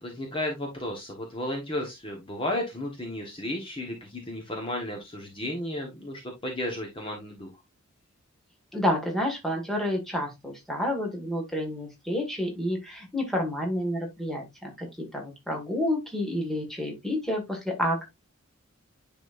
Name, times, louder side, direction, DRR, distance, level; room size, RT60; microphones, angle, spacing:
voice 1, 0.0-7.5, left 1 dB, 25° left, 1.2 m, -33 dB
voice 2, 8.7-18.1, left 1 dB, ahead, 1.7 m, -29 dB
9.8 x 4.2 x 2.5 m
head